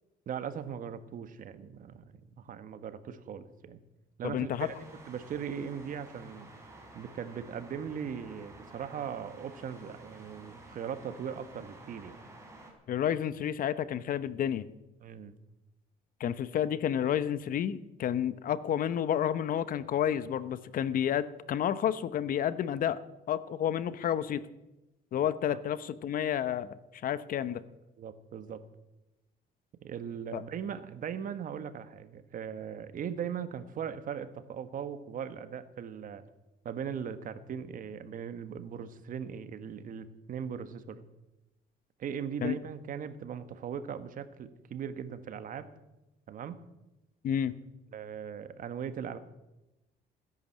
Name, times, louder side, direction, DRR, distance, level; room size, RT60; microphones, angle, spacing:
voice 1, 0.3-2.0 2.4-3.8 4.2-4.7 5.1-6.5 6.9-12.2 15.0-15.4 28.0-28.6 29.8-36.2 36.6-41.0 42.0-45.7 46.3-46.6 47.9-49.2, right 8 dB, 55° right, 12 dB, 1.4 m, -39 dB
voice 2, 4.2-4.7 12.9-14.7 16.2-23.0 23.3-24.5 25.1-27.6 30.3-30.4 42.4-42.5 47.2-47.5, left 9 dB, 55° left, 16 dB, 0.9 m, -30 dB
sound 1, 4.6-12.7, right 2 dB, 15° right, 4.6 m, -52 dB
16.0 x 10.5 x 7.5 m, 0.97 s
cardioid pair, 110°, 17 cm